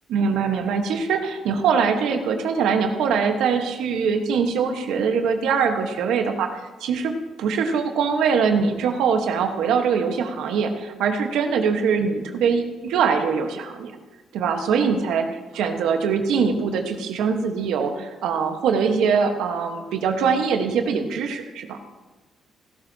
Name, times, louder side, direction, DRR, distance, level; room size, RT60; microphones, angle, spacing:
voice 1, 0.1-6.5 6.8-7.1 7.4-13.9 14.3-15.2 15.6-21.8, right 6 dB, 85° right, 5 dB, 1.3 m, -22 dB
16.5 x 12.0 x 2.8 m, 1.2 s
cardioid pair, 90°, 0 cm